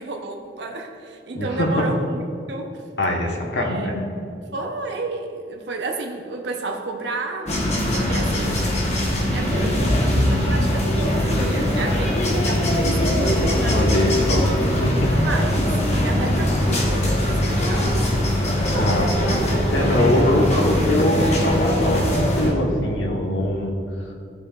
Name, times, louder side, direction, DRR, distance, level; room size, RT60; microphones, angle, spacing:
voice 1, 0.0-2.2 2.5-2.7 3.6-4.0 4.5-7.6 7.9-8.7 9.3-14.2 14.7-18.1, right 3 dB, 70° right, 2 dB, 0.7 m, -31 dB
voice 2, 1.3-1.9 3.0-4.0 13.6-15.1 18.6-19.3 19.7-23.7, left 1 dB, 80° left, 0 dB, 1.1 m, -22 dB
sound 1, 7.5-22.5, left 1 dB, 35° left, 1.0 m, -21 dB
13.0 x 4.9 x 2.4 m, 2.4 s
head